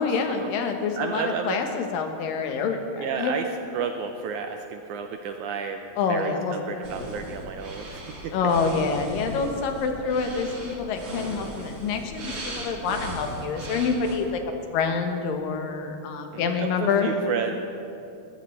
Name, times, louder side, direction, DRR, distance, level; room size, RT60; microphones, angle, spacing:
voice 1, 0.0-3.3 6.0-6.6 7.0-7.2 8.3-14.4 14.7-17.1, left 5 dB, 80° left, 4 dB, 2.8 m, -27 dB
voice 2, 1.0-1.6 3.0-3.5 3.7-8.4 16.3-17.6, right 6 dB, 80° right, 5 dB, 1.8 m, -32 dB
sound 1, 6.8-14.2, right 1 dB, 45° right, 2.7 m, -38 dB
20.0 x 15.0 x 3.2 m, 2.7 s
omnidirectional pair, 4.0 m